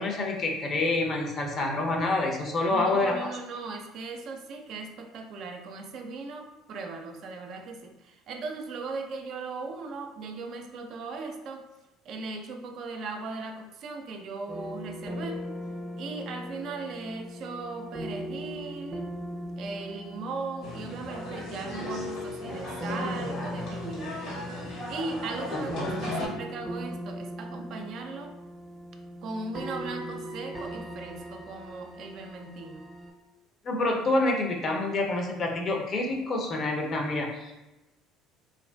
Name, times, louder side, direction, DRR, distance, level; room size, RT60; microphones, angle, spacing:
voice 1, 0.0-3.1 25.5-25.8 33.6-37.5, left 2 dB, 45° left, 1 dB, 0.5 m, -27 dB
voice 2, 2.7-11.7 12.1-15.5 16.0-19.1 19.6-24.5 24.9-28.4 29.2-32.9, right 3 dB, 60° right, 4 dB, 0.3 m, -38 dB
sound 1, 14.5-33.1, equal, 10° right, 0.5 m, -39 dB
sound 2, 20.6-26.3, left 1 dB, 65° left, 0.9 m, -37 dB
2.5 x 2.3 x 2.2 m, 1.0 s
hypercardioid pair, 75°, 0 cm